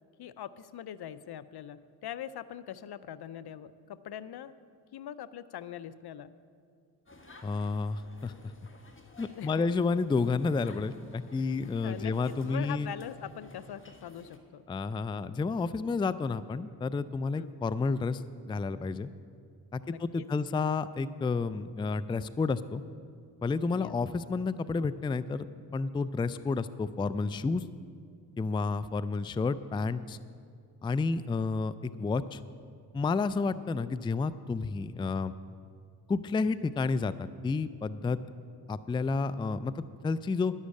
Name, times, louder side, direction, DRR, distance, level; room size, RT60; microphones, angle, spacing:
voice 1, 0.2-4.5 4.9-6.4 9.3-9.7 11.8-14.6 17.4-17.5 19.8-20.2 23.7-24.0, left 10 dB, 65° left, 16 dB, 0.6 m, -42 dB
sound 1, 7.1-14.4, left 2 dB, 30° left, 1.4 m, -55 dB
voice 2, 7.4-8.3 9.2-12.9 14.7-19.1 19.7-22.8 23.4-25.5 25.7-27.6 28.4-30.2 30.8-32.4 32.9-35.3 36.1-37.1 37.4-38.2 38.7-40.5, left 4 dB, 15° left, 15 dB, 0.3 m, -30 dB
11.0 x 6.4 x 8.4 m, 2.2 s
supercardioid pair, 45°, 42 cm